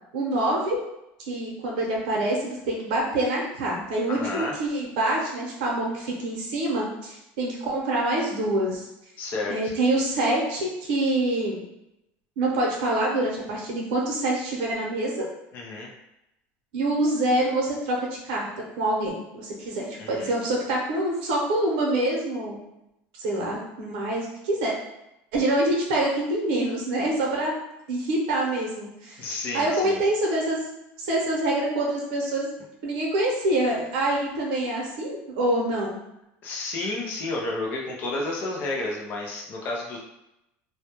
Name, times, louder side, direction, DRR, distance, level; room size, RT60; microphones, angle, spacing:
voice 1, 0.1-0.8 1.3-8.9 9.5-11.6 12.4-15.3 16.7-18.5 18.8-22.6 23.2-24.7 25.3-27.6 27.9-29.2 29.5-30.6 31.0-32.5 32.8-36.0, right 1 dB, 85° right, -2 dB, 0.7 m, -26 dB
voice 2, 4.1-4.5 9.2-9.7 15.5-15.9 20.0-20.3 29.2-30.0 36.4-40.0, left 2 dB, 35° left, -1 dB, 0.4 m, -31 dB
2.2 x 2.0 x 2.8 m, 0.86 s
cardioid pair, 175°, 5 cm